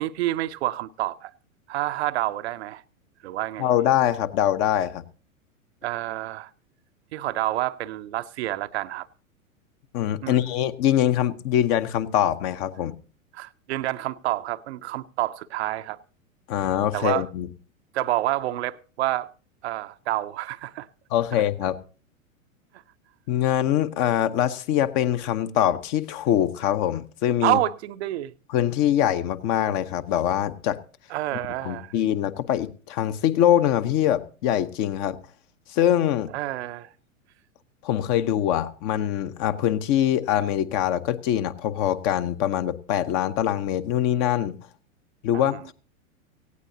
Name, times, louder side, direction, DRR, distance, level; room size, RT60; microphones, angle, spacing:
voice 1, 0.0-1.3 1.7-2.8 3.2-3.7 5.8-6.5 7.1-9.1 10.2-10.5 13.3-16.0 16.9-17.3 17.9-19.3 19.6-20.9 21.3-21.4 27.4-28.3 31.1-31.9 36.3-36.9 45.3-45.6, right 15 dB, 50° right, 0.7 m, -28 dB
voice 2, 3.6-5.0 9.9-13.0 16.5-17.5 21.1-21.8 23.3-27.6 28.5-30.8 31.6-35.2 35.7-36.3 37.8-44.6 45.2-45.7, left 11 dB, 40° left, 0.9 m, -23 dB
18.0 x 16.0 x 2.7 m
figure-of-eight pair, 100°, 41 cm